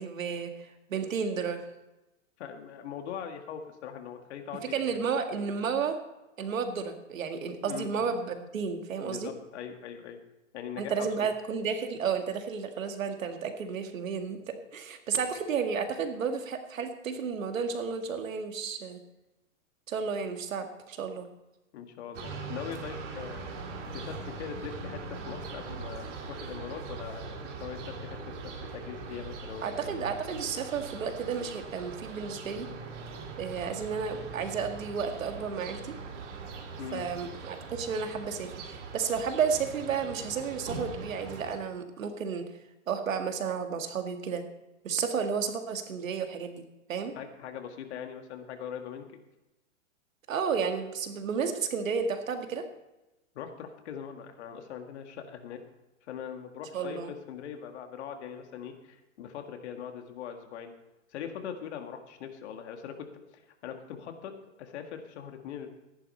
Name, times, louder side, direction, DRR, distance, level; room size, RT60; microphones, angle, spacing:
voice 1, 0.0-1.6 4.6-6.0 6.4-9.3 10.8-19.0 19.9-21.3 29.6-32.7 33.4-36.0 36.9-42.5 42.9-44.4 44.8-47.1 50.3-52.6 56.7-57.1, right 6 dB, 90° right, 6 dB, 2.0 m, -32 dB
voice 2, 2.4-5.0 7.7-7.9 9.0-10.2 10.5-11.3 21.7-23.5 23.9-30.0 36.8-37.0 47.2-49.2 53.4-55.6 56.0-60.7 61.1-63.1 63.6-65.7, left 8 dB, 60° left, 5 dB, 1.9 m, -41 dB
sound 1, 22.1-41.6, right 4 dB, 65° right, 2.4 m, -41 dB
14.0 x 11.0 x 4.3 m, 0.98 s
hypercardioid pair, 150°, 39 cm